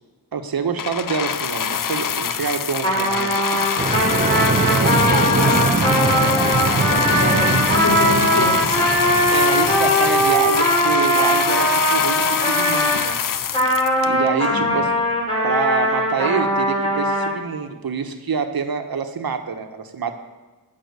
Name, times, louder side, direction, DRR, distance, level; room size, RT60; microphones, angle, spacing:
voice 1, 0.3-3.7 4.6-5.4 6.4-6.6 9.3-13.2 14.0-14.9 15.4-20.1, right 5 dB, 65° right, 7 dB, 1.1 m, -26 dB
sound 1, 0.8-14.5 15.2-15.3, left 8 dB, 55° left, 0.6 m, -24 dB
Trumpet, 2.8-13.0 13.5-17.3, equal, 15° left, 4.5 m, -20 dB
sound 2, 3.8-10.9, right 5 dB, 20° right, 0.4 m, -23 dB
voice 2, 4.4-8.8 9.1-9.3 14.5-14.7, left 2 dB, 70° left, -2 dB, 3.9 m, -27 dB
12.5 x 6.0 x 6.7 m, 1.2 s
cardioid pair, 50°, 39 cm